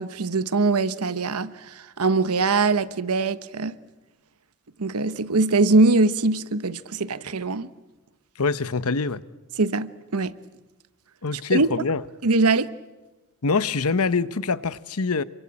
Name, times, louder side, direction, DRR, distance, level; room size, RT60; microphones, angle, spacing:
voice 1, 0.0-3.7 4.8-7.7 9.6-10.3 11.5-11.7 12.2-12.7, right 3 dB, 80° right, 1.1 m, -22 dB
voice 2, 8.4-9.2 11.2-12.0 13.4-15.2, left 4 dB, 75° left, 0.9 m, -24 dB
27.0 x 24.5 x 8.8 m
head